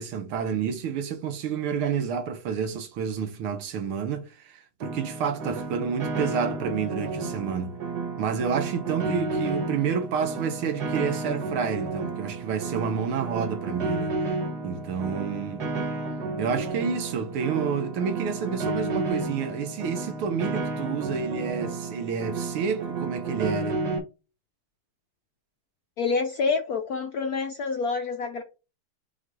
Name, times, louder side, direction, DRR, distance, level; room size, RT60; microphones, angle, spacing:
voice 1, 0.0-7.8 8.2-14.3 14.6-15.7 16.4-23.8, right 6 dB, 80° right, 1.9 m, -29 dB
Piano, 4.8-24.0, right 3 dB, 55° right, 1.7 m, -32 dB
voice 2, 26.0-28.4, left 4 dB, 65° left, 0.9 m, -27 dB
6.2 x 3.3 x 4.8 m
omnidirectional pair, 2.4 m